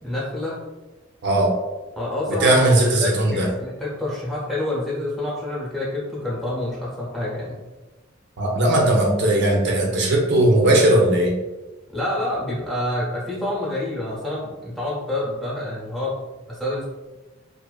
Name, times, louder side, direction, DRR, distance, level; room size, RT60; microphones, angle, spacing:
voice 1, 0.0-0.6 2.0-7.5 11.9-16.2 16.5-16.9, left 1 dB, ahead, -6 dB, 0.7 m, -27 dB
voice 2, 1.2-1.5 2.4-3.5 8.4-11.3, right 1 dB, 60° right, 0 dB, 0.4 m, -18 dB
2.5 x 2.4 x 2.3 m, 1.1 s
head